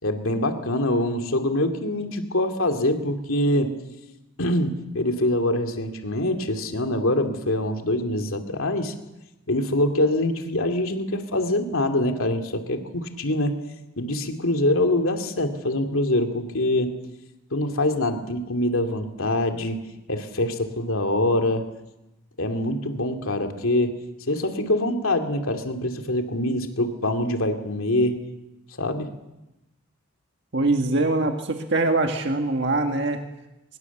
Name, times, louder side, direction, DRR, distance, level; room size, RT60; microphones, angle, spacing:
voice 1, 0.0-3.7 4.4-8.9 9.5-13.6 14.0-16.9 17.5-19.8 20.1-21.7 22.4-24.0 24.3-28.2 28.8-29.1, left 1 dB, 80° left, 5 dB, 2.5 m, -24 dB
voice 2, 30.5-33.2, right 2 dB, 55° right, 4 dB, 1.8 m, -23 dB
24.0 x 21.5 x 7.3 m, 0.95 s
head